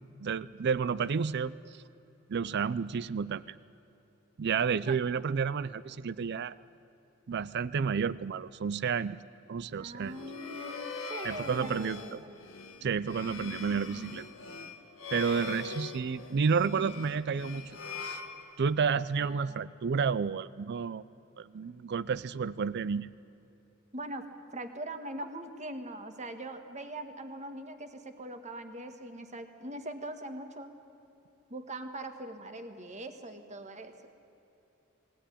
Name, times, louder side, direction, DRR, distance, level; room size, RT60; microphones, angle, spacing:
voice 1, 0.2-1.5 2.3-3.6 4.4-6.5 7.3-9.2 9.5-10.1 11.2-12.2 12.8-14.2 15.1-18.2 18.6-21.0 21.4-23.1, right 6 dB, 55° right, 17 dB, 0.4 m, -31 dB
voice 2, 9.7-12.4 19.1-19.7 23.9-24.3 24.5-30.7 31.5-33.9, right 1 dB, 35° right, 7 dB, 1.6 m, -42 dB
sound 1, 10.0-19.0, left 4 dB, 75° left, 1.5 m, -42 dB
20.5 x 17.0 x 9.9 m, 2.9 s
head